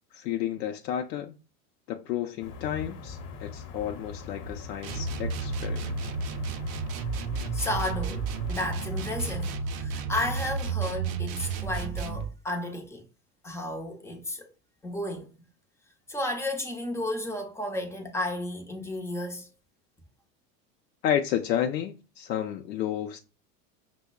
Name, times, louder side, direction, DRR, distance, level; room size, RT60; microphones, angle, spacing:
voice 1, 0.1-1.3 1.9-6.0 21.0-23.2, left 10 dB, 85° left, 0.5 m, -31 dB
sound 1, 2.4-9.6, left 5 dB, 45° left, 0.7 m, -42 dB
sound 2, 4.8-12.3, right 5 dB, 50° right, 0.6 m, -32 dB
voice 2, 7.5-13.1 13.4-14.5 14.8-15.4 16.1-19.5, left 1 dB, 5° left, 0.4 m, -33 dB
5.6 x 2.0 x 2.2 m
hypercardioid pair, 90°, 48 cm